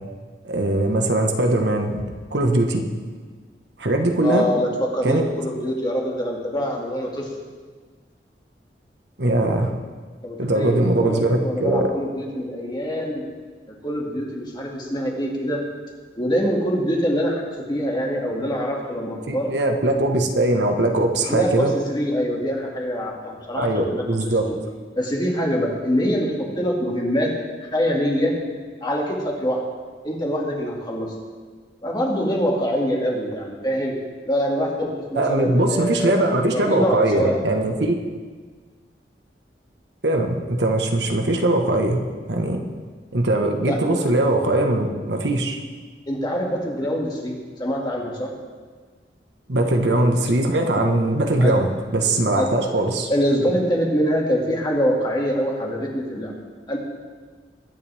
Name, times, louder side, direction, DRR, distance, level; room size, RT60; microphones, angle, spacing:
voice 1, 0.4-1.9 2.3-2.8 3.8-4.4 5.0-5.2 9.2-9.7 10.4-11.9 19.3-21.7 23.5-24.5 35.1-38.0 40.0-42.0 42.3-42.6 43.1-45.6 49.5-53.1, right 1 dB, 80° right, 3 dB, 1.4 m, -21 dB
voice 2, 4.2-7.3 10.2-13.2 13.8-15.6 16.2-17.4 17.7-19.5 21.3-24.5 24.9-27.3 27.6-28.3 28.8-29.6 30.0-31.1 31.8-34.0 34.3-37.4 43.7-43.8 46.1-48.3 51.4-51.6 52.3-52.7 53.1-56.3 56.7-56.8, equal, 25° left, -2 dB, 2.4 m, -24 dB
21.5 x 10.5 x 3.6 m, 1.5 s
head